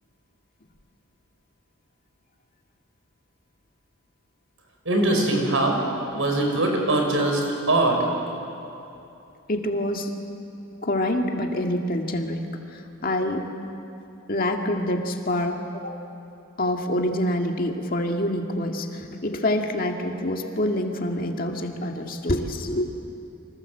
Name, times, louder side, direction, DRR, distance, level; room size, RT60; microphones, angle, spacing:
voice 1, 4.9-5.8 6.1-8.1, right 2 dB, 65° right, 2 dB, 5.6 m, -22 dB
voice 2, 9.5-10.1 10.8-12.4 12.7-13.5 14.3-16.1 16.6-22.9, left 1 dB, 40° left, 3 dB, 2.0 m, -26 dB
29.0 x 25.5 x 7.8 m, 2.8 s
head